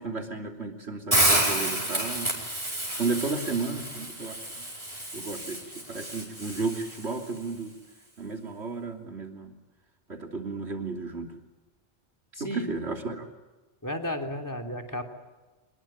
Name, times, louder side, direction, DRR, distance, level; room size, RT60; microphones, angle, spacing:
voice 1, 0.0-2.3 3.0-4.4 5.1-5.6 5.9-7.7 8.2-9.5 10.1-11.3 12.4-13.3, right 4 dB, 90° right, 3 dB, 3.5 m, -33 dB
Hiss, 1.1-7.2, right 1 dB, 30° right, 5.1 m, -29 dB
voice 2, 12.3-12.7 13.8-15.0, left 1 dB, 15° left, 8 dB, 3.2 m, -33 dB
26.5 x 21.0 x 8.9 m, 1.2 s
omnidirectional pair, 1.1 m